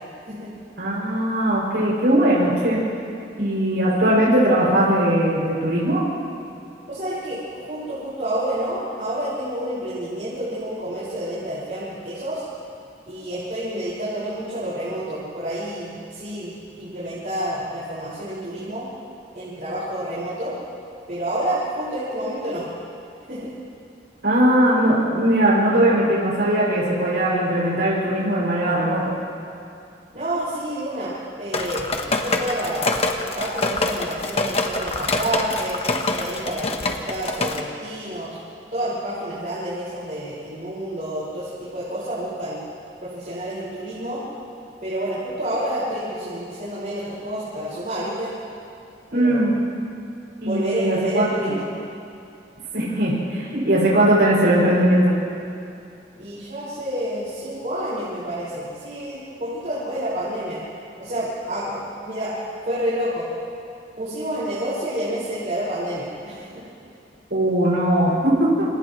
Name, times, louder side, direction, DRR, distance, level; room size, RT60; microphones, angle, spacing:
voice 1, 0.8-2.8 3.4-6.1 24.2-29.1 49.1-49.5 50.4-51.5 52.7-55.1 67.3-68.7, right 1 dB, 70° right, -6 dB, 6.8 m, -19 dB
voice 2, 6.9-12.4 13.1-18.9 19.3-20.5 21.1-22.7 23.3-23.5 30.1-35.8 36.2-38.4 38.7-42.6 43.0-44.2 44.8-48.3 49.1-49.6 50.4-51.7 56.2-60.6 61.0-62.4 62.7-63.3 64.0-66.6, right 1 dB, 45° right, -9 dB, 5.9 m, -29 dB
sound 1, 31.5-37.6, left 2 dB, 35° left, 1.3 m, -25 dB
29.0 x 28.5 x 3.3 m, 2.6 s
head